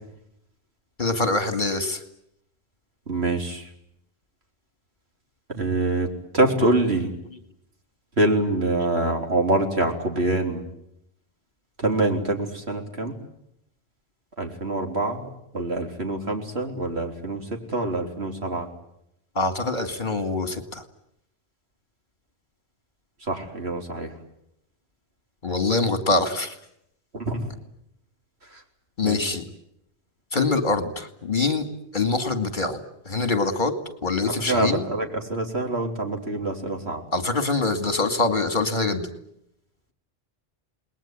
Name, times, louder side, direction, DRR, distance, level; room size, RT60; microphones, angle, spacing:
voice 1, 1.0-2.0 19.3-20.8 25.4-26.6 29.0-29.4 30.3-31.7 31.9-32.8 33.0-33.7 34.0-34.8 37.1-39.1, left 3 dB, 45° left, 8 dB, 2.6 m, -24 dB
voice 2, 3.1-3.7 5.5-6.1 6.3-7.1 8.2-10.6 11.8-13.1 14.4-15.3 15.5-17.4 17.7-18.7 23.3-24.1 27.1-27.4 28.5-28.6 29.0-29.2 34.5-37.0, right 2 dB, 65° right, 3 dB, 4.0 m, -25 dB
29.0 x 20.5 x 9.0 m, 0.77 s
omnidirectional pair, 1.1 m